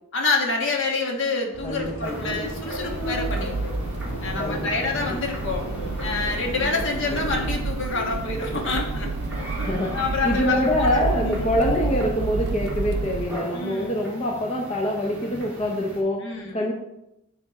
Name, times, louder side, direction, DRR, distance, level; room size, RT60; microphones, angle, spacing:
voice 1, 0.1-3.7 4.2-5.7 6.0-9.3 9.9-11.5 13.5-13.9 16.2-16.7, left 3 dB, 60° left, 1 dB, 1.3 m, -27 dB
Subway metro underground, 1.5-7.6, equal, 85° left, 1.1 m, -35 dB
voice 2, 1.6-2.5 4.4-5.2 9.7-10.0 10.2-16.3 16.5-16.7, left 1 dB, 30° left, 0 dB, 0.7 m, -25 dB
sound 1, 2.0-16.0, equal, 5° right, 2.4 m, -37 dB
Accelerating revving vroom, 2.7-13.2, right 3 dB, 50° right, 0.4 m, -30 dB
9.6 x 3.4 x 4.2 m, 0.87 s
head